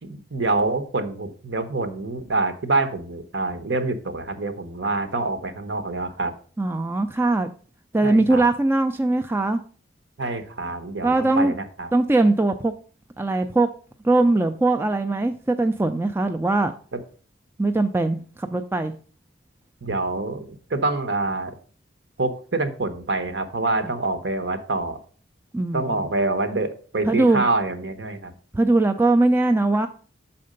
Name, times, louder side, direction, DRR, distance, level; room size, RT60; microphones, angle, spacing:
voice 1, 0.0-6.3 8.0-8.4 10.2-11.9 16.9-17.0 19.8-21.6 22.2-25.0 25.7-28.3, right 3 dB, 65° right, 9 dB, 0.9 m, -26 dB
voice 2, 6.6-7.5 7.9-9.6 11.0-11.5 11.9-12.7 13.2-13.7 14.0-16.7 17.6-18.9 25.5-26.1 27.1-27.4 28.5-29.9, right 2 dB, 10° right, 6 dB, 0.3 m, -21 dB
6.5 x 4.3 x 5.2 m, 0.40 s
head